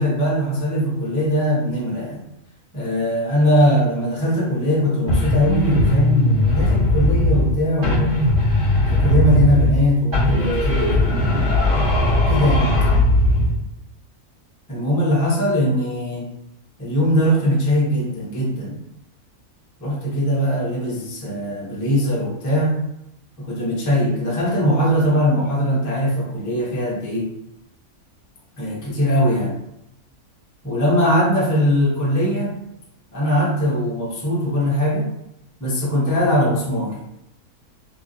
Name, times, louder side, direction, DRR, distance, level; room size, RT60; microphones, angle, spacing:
voice 1, 0.0-2.2 2.7-8.2 8.9-11.1 12.3-12.7 14.7-16.3 16.8-18.8 19.8-22.7 23.4-27.3 28.6-29.6 30.6-32.6 33.1-35.1 35.6-37.0, equal, 25° left, -5 dB, 0.4 m, -20 dB
sound 1, 5.1-7.5 7.8-9.8 10.1-13.6, left 1 dB, 60° right, 1.3 m, -18 dB
2.9 x 2.4 x 2.6 m, 0.83 s
omnidirectional pair, 1.6 m